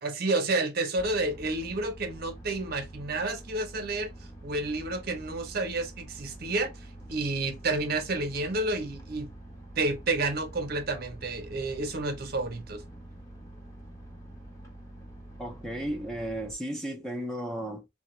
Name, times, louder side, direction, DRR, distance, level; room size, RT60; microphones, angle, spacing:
voice 1, 0.0-4.1 4.4-6.7 7.1-9.3 9.8-12.8, right 2 dB, 55° right, 0.7 m, -30 dB
sound 1, 1.0-16.5, right 1 dB, 20° left, 0.9 m, -46 dB
voice 2, 15.4-17.9, right 1 dB, 5° left, 0.5 m, -34 dB
3.3 x 2.1 x 3.0 m
head